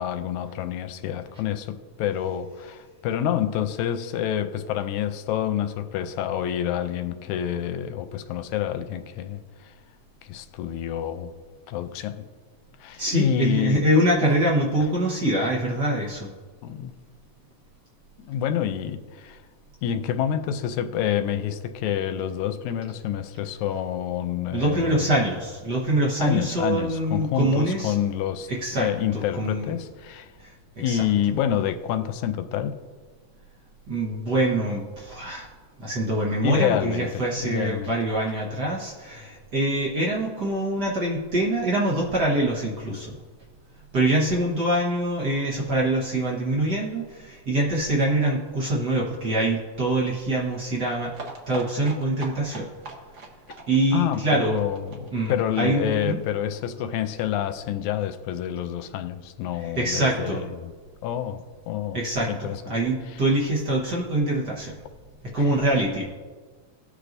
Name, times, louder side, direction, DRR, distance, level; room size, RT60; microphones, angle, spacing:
voice 1, 0.0-9.7 10.2-11.3 11.7-12.3 12.8-13.9 16.6-16.9 18.2-19.4 19.8-25.1 26.2-30.3 30.8-32.8 36.4-37.9 38.3-38.4 53.9-60.7 61.0-62.7 63.1-63.2 65.4-65.5, left 10 dB, 90° left, 2.0 m, -28 dB
voice 2, 13.0-16.3 24.5-27.9 28.5-28.9 29.4-29.7 30.4-30.5 30.8-31.0 33.9-35.5 35.8-43.1 43.9-51.1 51.5-52.7 53.7-54.6 55.1-56.2 59.6-60.4 61.9-64.7 65.3-66.0, right 1 dB, 45° right, 1.4 m, -24 dB
sound 1, 51.1-56.7 56.9-57.0 57.3-57.4 57.6-57.7, right 2 dB, 75° right, 0.6 m, -42 dB
19.5 x 6.6 x 2.6 m
omnidirectional pair, 3.3 m